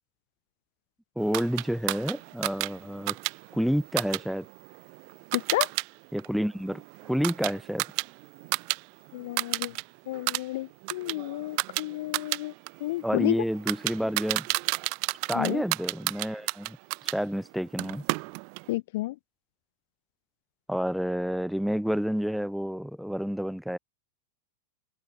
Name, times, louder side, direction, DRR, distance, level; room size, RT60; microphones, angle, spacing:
voice 1, 1.2-3.2 3.5-4.5 6.1-6.8 7.1-7.9 13.0-14.5 15.3-16.8 17.0-18.0 20.7-23.8, equal, ahead, 7.8 m, -29 dB
sound 1, 1.3-5.9 6.2-8.8 9.1-9.8 10.1-17.2 17.8-18.7, right 40 dB or more, 45° right, 1.7 m, -32 dB
voice 2, 5.3-5.7 9.1-9.8 10.1-12.5 12.8-13.4 15.3-15.6 18.7-19.1, left 18 dB, 50° left, 1.3 m, -31 dB
figure-of-eight pair, 90°, 0 cm